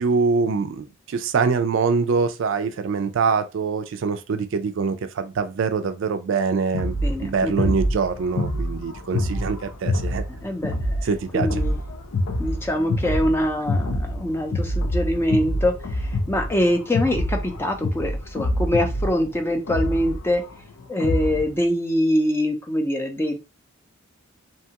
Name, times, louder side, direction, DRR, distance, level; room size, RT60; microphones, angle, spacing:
voice 1, 0.0-7.0 7.2-10.2 11.0-11.5, right 5 dB, 65° right, 0.4 m, -24 dB
sound 1, 6.7-21.5, left 1 dB, 85° left, 0.5 m, -26 dB
voice 2, 7.0-7.7 10.4-11.1 11.3-11.8 12.4-20.4 20.9-23.4, left 1 dB, 10° left, 0.4 m, -24 dB
2.8 x 2.3 x 2.8 m
head